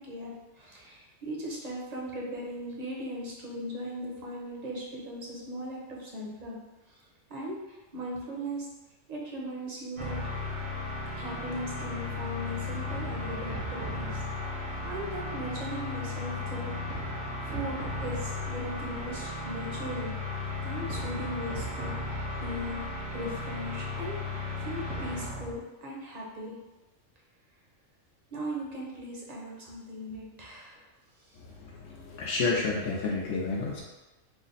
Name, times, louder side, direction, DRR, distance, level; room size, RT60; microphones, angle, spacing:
voice 1, 0.0-6.6 6.9-7.0 7.3-8.7 9.1-10.2 11.2-14.2 14.5-17.1 17.5-20.1 20.6-24.2 24.6-26.6 28.3-30.8 31.2-31.4, equal, 40° right, -3 dB, 0.7 m, -38 dB
sound 1, 10.0-25.6, left 2 dB, 75° right, 1.3 m, -35 dB
voice 2, 31.8-33.8, left 3 dB, 75° left, -3 dB, 0.9 m, -30 dB
3.2 x 2.1 x 3.9 m, 1.1 s
omnidirectional pair, 1.3 m